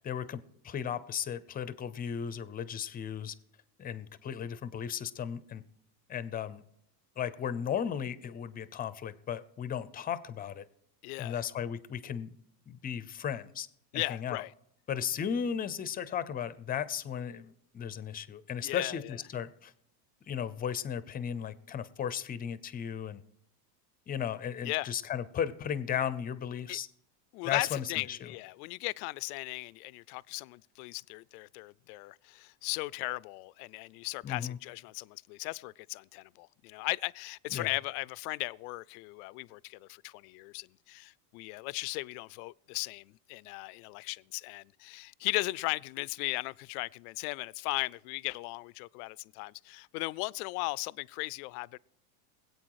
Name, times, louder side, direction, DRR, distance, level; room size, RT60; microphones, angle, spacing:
voice 1, 0.0-3.3 3.8-5.6 6.1-6.6 7.2-10.6 11.2-12.3 12.7-13.7 13.9-14.4 14.9-19.7 20.3-23.2 24.1-26.9 27.4-28.3 34.2-34.6 37.5-37.7, left 8 dB, 20° left, 0.6 m, -35 dB
voice 2, 11.0-11.4 13.9-14.5 18.6-19.2 24.6-24.9 26.7-26.8 27.3-51.8, left 24 dB, 65° left, 0.5 m, -37 dB
21.0 x 8.4 x 4.8 m
supercardioid pair, 125°, 49 cm